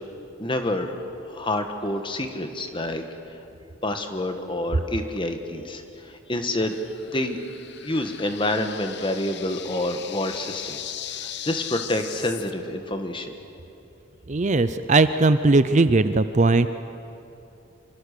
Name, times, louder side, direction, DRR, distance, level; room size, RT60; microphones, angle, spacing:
voice 1, 0.4-1.0 1.3-3.0 3.8-6.7 7.1-7.4 7.8-13.3, left 1 dB, 25° left, 6 dB, 1.5 m, -28 dB
sound 1, 6.6-12.5, left 10 dB, 55° left, 0.9 m, -38 dB
voice 2, 14.3-16.7, right 3 dB, 35° right, 12 dB, 0.5 m, -19 dB
25.5 x 25.0 x 6.8 m, 2.9 s
head